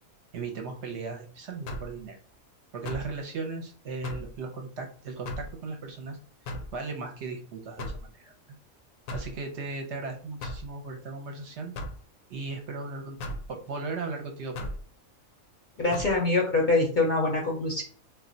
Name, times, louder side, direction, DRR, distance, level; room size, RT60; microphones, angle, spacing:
voice 1, 0.3-2.2 2.7-6.2 6.7-8.3 9.1-11.7 12.3-13.2 13.5-14.7, right 4 dB, 65° right, 3 dB, 0.9 m, -37 dB
sound 1, 1.7-2.0 2.8-3.1 4.0-4.3 5.2-5.5 6.4-6.7 7.8-8.1 9.1-9.4 10.4-10.7 11.7-12.0 13.2-13.5 14.5-14.8 15.9-16.1, left 1 dB, 90° left, 1.0 m, -36 dB
voice 2, 15.8-17.8, left 2 dB, 50° left, -2 dB, 0.6 m, -24 dB
2.3 x 2.1 x 3.8 m, 0.43 s
omnidirectional pair, 1.4 m